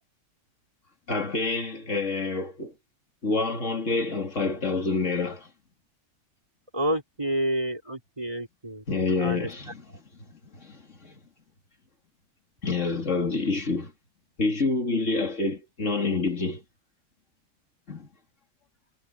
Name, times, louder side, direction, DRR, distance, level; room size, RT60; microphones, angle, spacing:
voice 1, 1.1-2.7 3.2-5.5 8.9-10.0 10.3-11.2 12.6-13.9 14.4-16.6 17.9-18.1, left 3 dB, 85° left, 3.1 m, -28 dB
voice 2, 6.7-8.8 9.2-9.5, right 1 dB, 25° right, 3.7 m, -29 dB
omnidirectional pair, 1.3 m